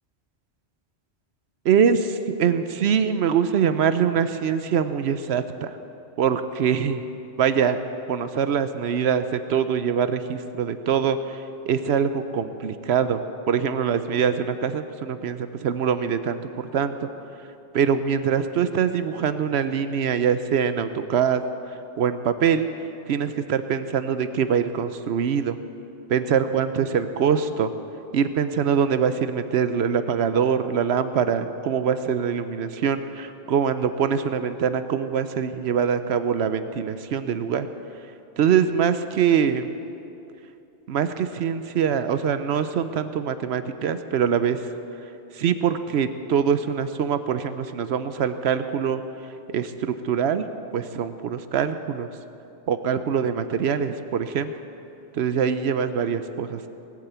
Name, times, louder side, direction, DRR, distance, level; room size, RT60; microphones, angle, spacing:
voice 1, 1.6-5.8 6.2-7.1 7.4-7.8 8.1-13.2 13.5-16.4 16.7-17.1 17.7-21.4 21.7-22.7 23.1-25.6 26.1-27.7 28.1-37.7 38.4-39.7 40.9-44.7 45.3-49.0 49.5-50.5 50.7-52.1 52.7-54.5 55.1-56.6, right 7 dB, 80° right, 11 dB, 0.9 m, -23 dB
19.0 x 8.7 x 8.0 m, 2.8 s
omnidirectional pair, 1.1 m